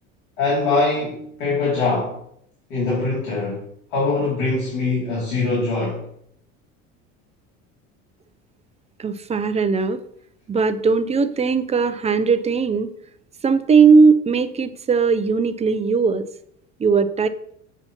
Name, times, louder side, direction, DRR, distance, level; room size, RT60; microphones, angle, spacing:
voice 1, 0.4-2.2 2.7-6.0, left 3 dB, 80° left, -6 dB, 2.5 m, -23 dB
voice 2, 9.0-10.0 10.5-12.9 13.4-16.3 16.8-17.3, right 5 dB, 20° right, 11 dB, 0.5 m, -18 dB
7.0 x 2.8 x 5.7 m, 0.70 s
hypercardioid pair, 80°, 37 cm